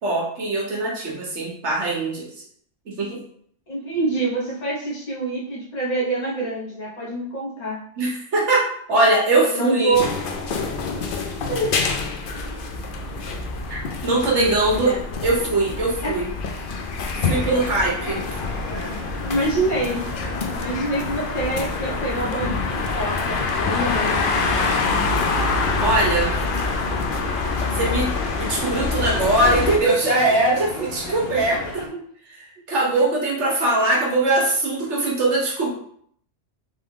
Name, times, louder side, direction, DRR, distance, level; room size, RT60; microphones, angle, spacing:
voice 1, 0.0-2.3 2.9-3.2 8.0-10.0 13.7-14.9 15.2-16.3 17.2-18.2 25.8-26.4 27.7-28.1 28.4-31.9 32.3-35.7, right 2 dB, 70° right, -2 dB, 1.4 m, -21 dB
voice 2, 3.7-7.8 9.5-10.1 10.9-11.0 11.5-11.7 14.4-15.0 16.0-16.1 17.3-17.6 18.0-18.2 19.2-20.0 20.6-22.6 22.9-24.2 31.4-32.0, right 2 dB, 35° left, -5 dB, 1.2 m, -26 dB
sound 1, 9.9-29.8, left 4 dB, 55° left, 0.6 m, -26 dB
sound 2, 17.3-31.9, left 2 dB, 80° left, 1.2 m, -35 dB
3.6 x 3.4 x 3.7 m, 0.64 s
omnidirectional pair, 1.3 m